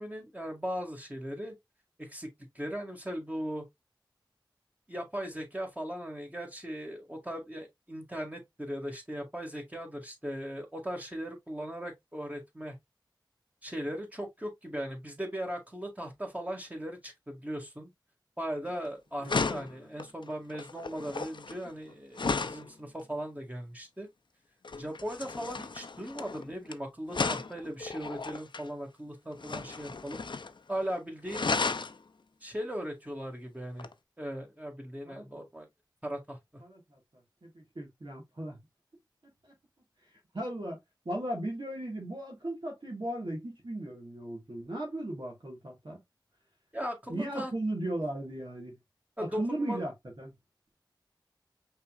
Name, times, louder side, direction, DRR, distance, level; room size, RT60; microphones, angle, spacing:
voice 1, 0.0-1.5 2.0-2.3 2.6-3.6 4.9-12.8 13.6-17.9 18.4-24.1 24.8-30.2 30.7-31.5 32.4-33.9 34.2-35.7 36.0-36.4 46.7-47.5 49.2-49.8, equal, 20° right, 1.9 m, -38 dB
sound 1, 18.7-18.9 19.2-22.7 24.6-26.7 27.1-28.7 29.4-30.6 30.8-30.9 31.3-32.0 33.8-33.9, left 4 dB, 70° left, 0.5 m, -34 dB
voice 2, 35.1-35.4 36.6-37.0 37.4-38.6 39.4-39.5 40.3-40.8 41.1-46.0 47.1-48.8 49.2-49.9 50.2-50.3, right 1 dB, 70° right, 1.8 m, -36 dB
5.6 x 3.6 x 2.4 m
wide cardioid pair, 50°, 8 cm